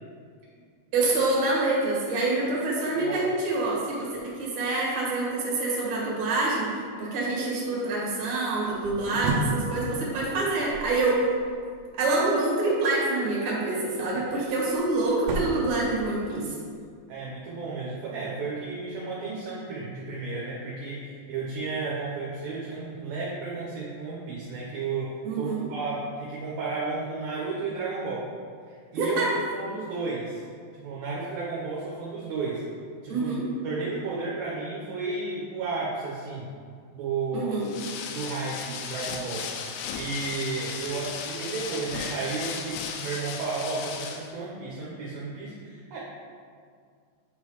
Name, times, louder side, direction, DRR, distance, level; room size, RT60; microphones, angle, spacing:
voice 1, 0.9-6.7 7.0-11.2 11.9-16.5 25.2-25.6 28.9-29.3 33.1-33.5 37.3-37.7, right 2 dB, 50° right, -5 dB, 2.3 m, -26 dB
voice 2, 3.0-3.3 14.3-14.5 17.1-25.1 25.3-28.2 28.7-29.2 29.5-30.4 30.7-32.6 33.0-33.4 33.6-36.5 36.9-37.6 38.1-39.5 39.9-46.0, right 4 dB, 70° right, -5 dB, 2.5 m, -33 dB
sound 1, 8.6-11.8 14.0-16.6, right 2 dB, 90° right, 2.1 m, -34 dB
sound 2, 37.6-44.3, left 6 dB, 85° left, 2.6 m, -36 dB
8.6 x 3.9 x 4.7 m, 2.1 s
omnidirectional pair, 5.1 m